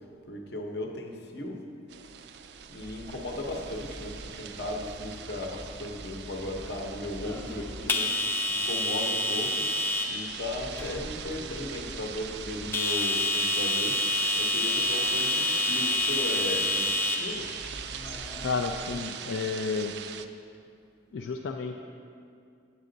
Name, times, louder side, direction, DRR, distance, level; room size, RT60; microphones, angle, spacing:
voice 1, 0.3-1.6 2.7-8.1 8.5-17.5, left 1 dB, 60° left, 2 dB, 0.9 m, -36 dB
sound 1, 1.9-20.3, right 8 dB, 60° right, 0.3 m, -41 dB
sound 2, 2.9-19.0, left 2 dB, 10° left, 0.5 m, -30 dB
voice 2, 18.4-19.9 21.1-21.8, left 4 dB, 80° left, 2 dB, 0.4 m, -31 dB
8.3 x 7.5 x 3.9 m, 2.4 s
head